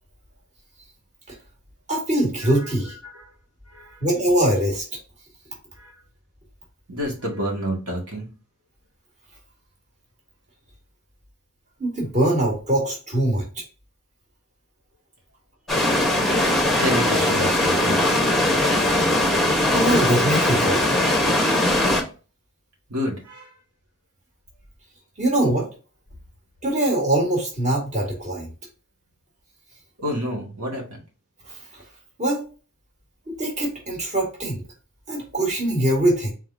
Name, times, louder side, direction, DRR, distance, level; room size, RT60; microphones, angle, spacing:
voice 1, 1.9-2.9 4.0-4.8 11.8-13.6 19.7-20.9 25.2-25.7 26.6-28.5 31.5-31.6 32.2-32.4 33.3-34.6 35.1-36.3, right 1 dB, 35° right, -1 dB, 1.7 m, -22 dB
voice 2, 3.7-4.0 5.8-5.9 6.9-8.3 16.8-18.1 22.9-23.5 30.0-31.0, equal, 85° right, -1 dB, 1.8 m, -29 dB
sound 1, 15.7-22.0, left 1 dB, ahead, 0.9 m, -20 dB
4.3 x 3.8 x 2.6 m, 0.34 s
head